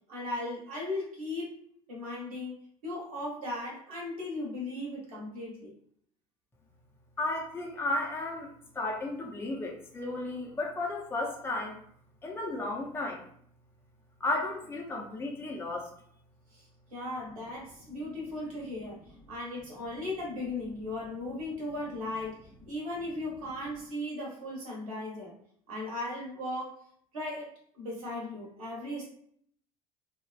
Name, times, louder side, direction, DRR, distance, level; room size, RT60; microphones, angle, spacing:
voice 1, 0.1-1.5 1.9-5.7 16.5-16.7 16.9-19.0 19.3-25.4 25.7-26.7 27.1-29.1, left 1 dB, 75° right, -3 dB, 1.1 m, -37 dB
voice 2, 7.2-11.8 12.2-13.2 14.2-15.9, left 2 dB, 10° left, -1 dB, 0.6 m, -34 dB
3.3 x 2.3 x 2.3 m, 0.64 s
figure-of-eight pair, 60°, 19 cm